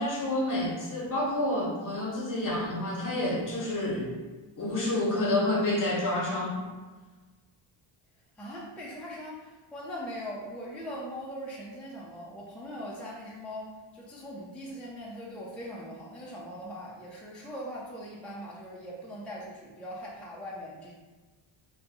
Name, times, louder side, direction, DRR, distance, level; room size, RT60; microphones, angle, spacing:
voice 1, 0.0-4.1 4.6-6.6, left 1 dB, 40° left, -2 dB, 0.9 m, -29 dB
voice 2, 8.4-20.9, equal, 5° left, -5 dB, 0.4 m, -41 dB
2.7 x 2.2 x 4.0 m, 1.3 s
cardioid pair, 125°, 47 cm